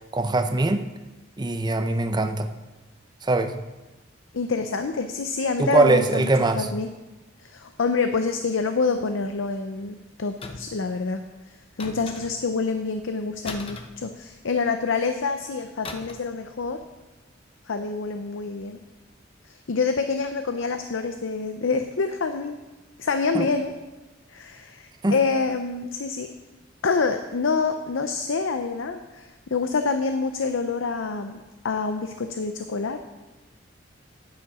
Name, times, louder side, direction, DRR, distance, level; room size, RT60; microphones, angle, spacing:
voice 1, 0.1-0.8 1.4-2.5 3.2-3.5 5.6-6.7 23.3-23.4 25.0-25.1, right 2 dB, 20° right, 8 dB, 0.6 m, -21 dB
voice 2, 4.3-6.9 7.4-11.2 11.5-16.8 17.7-18.8 19.5-22.6 23.0-23.7 24.3-26.3 26.8-33.0, left 4 dB, 80° left, 7 dB, 0.6 m, -27 dB
sound 1, 10.4-10.9 11.8-12.6 13.4-14.6 15.8-16.4 16.6-16.8, left 3 dB, 30° left, 0.7 m, -39 dB
9.6 x 8.9 x 4.9 m, 1.1 s
head